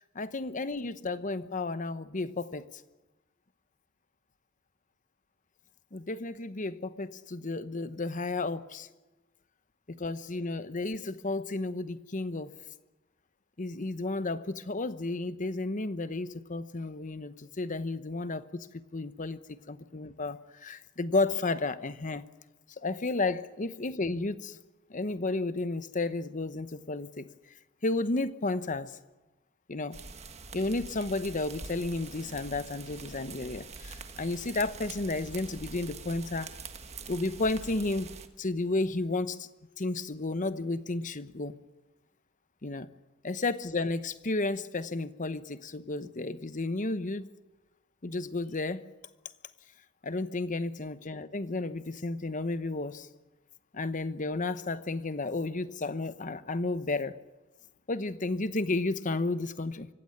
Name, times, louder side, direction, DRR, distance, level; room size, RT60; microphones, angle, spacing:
voice 1, 0.0-2.8 5.9-8.9 9.9-12.5 13.6-18.7 18.9-22.2 22.8-24.6 24.9-27.3 27.8-29.0 29.7-30.0 30.5-36.5 37.1-38.1 38.4-39.5 39.8-41.6 42.6-42.9 43.2-47.3 48.0-48.8 50.0-53.1 53.7-57.1 57.9-59.9, left 2 dB, 35° left, 13 dB, 0.9 m, -32 dB
sound 1, 29.9-38.3, right 4 dB, 30° right, 1.4 m, -45 dB
24.5 x 15.5 x 9.6 m, 1.1 s
head